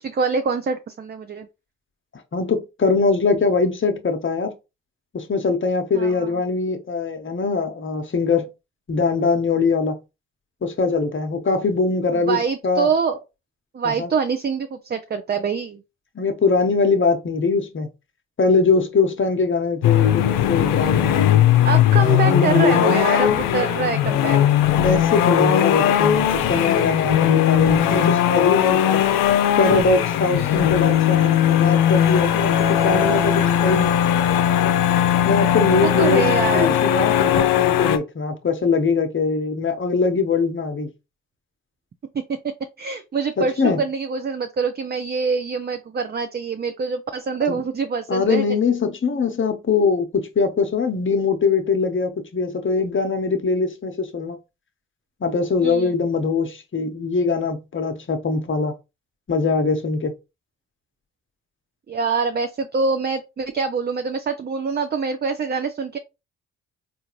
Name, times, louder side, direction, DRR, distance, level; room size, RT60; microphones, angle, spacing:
voice 1, 0.0-1.5 5.9-6.4 12.1-13.2 13.7-15.8 21.6-24.4 30.3-30.7 35.8-36.8 42.8-48.5 55.6-55.9 61.9-66.0, right 5 dB, 30° right, 0.5 m, -25 dB
voice 2, 2.3-4.5 5.1-8.5 8.9-10.0 10.6-12.9 13.8-14.1 16.1-17.9 18.4-21.5 21.9-23.0 23.3-23.5 24.8-29.0 29.6-34.0 35.3-36.2 36.5-40.9 43.4-43.8 47.5-47.6 48.1-54.4 55.2-58.7 59.3-60.1, left 4 dB, 40° left, 0.9 m, -22 dB
sound 1, 19.8-38.0, left 11 dB, 90° left, 0.5 m, -18 dB
3.7 x 2.5 x 3.0 m
supercardioid pair, 50°, 32 cm